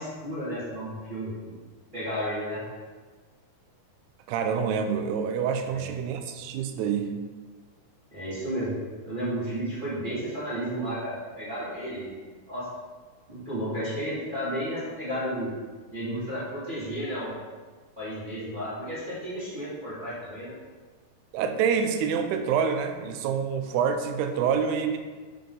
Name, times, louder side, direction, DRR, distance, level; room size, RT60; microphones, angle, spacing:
voice 1, 0.0-1.5 1.9-2.6 5.6-5.9 8.1-12.7 13.3-15.5 15.9-17.3 17.9-20.5, equal, 25° right, -10 dB, 1.0 m, -33 dB
voice 2, 4.3-7.1 21.3-25.0, right 7 dB, 85° right, 7 dB, 2.6 m, -27 dB
6.9 x 5.8 x 3.8 m, 1.4 s
omnidirectional pair, 4.6 m